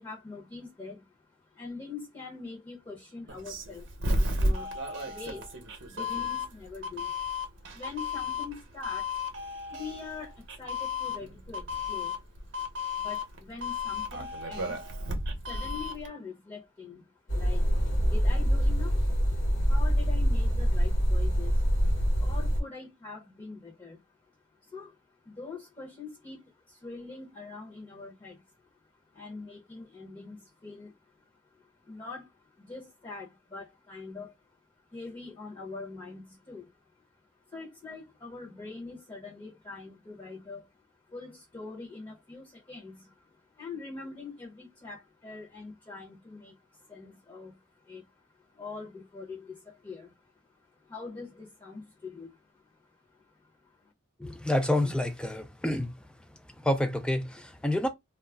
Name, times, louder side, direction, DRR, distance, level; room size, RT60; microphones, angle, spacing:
voice 1, 0.0-53.9, left 4 dB, 20° left, 0.7 m, -45 dB
Doorbell, 3.3-16.1, left 2 dB, 60° right, 0.7 m, -33 dB
sound 1, 17.3-22.6, equal, 60° left, 1.1 m, -25 dB
voice 2, 54.2-56.1 56.6-57.9, left 1 dB, 5° left, 0.3 m, -28 dB
2.3 x 2.0 x 3.3 m
head